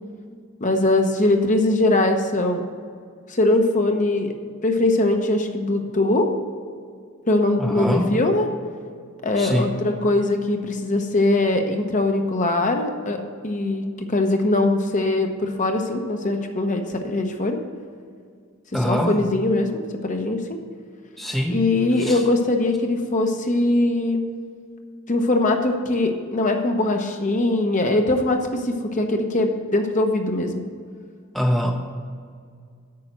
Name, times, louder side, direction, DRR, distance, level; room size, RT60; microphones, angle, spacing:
voice 1, 0.6-2.6 3.3-4.3 4.6-6.3 7.3-8.5 9.2-17.6 18.8-20.6 21.5-24.2 25.1-30.6, left 2 dB, 35° left, 4 dB, 0.9 m, -21 dB
voice 2, 7.6-8.2 9.4-9.7 18.7-19.2 21.2-21.6 22.0-22.2 31.3-31.7, equal, ahead, 1 dB, 0.7 m, -23 dB
8.6 x 5.7 x 7.8 m, 2.1 s
head